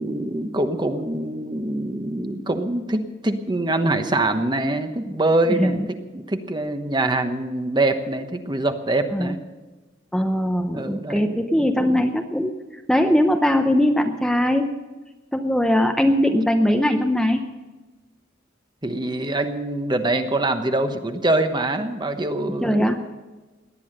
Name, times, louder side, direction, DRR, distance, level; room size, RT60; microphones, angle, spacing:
voice 1, 0.0-9.4 10.7-11.4 18.8-23.1, right 2 dB, 25° right, 8 dB, 1.1 m, -24 dB
voice 2, 5.5-5.9 9.1-9.3 10.1-12.6 12.9-14.7 15.3-17.4 22.6-23.0, equal, 5° left, 4 dB, 0.7 m, -20 dB
18.0 x 10.5 x 6.6 m, 1.2 s
head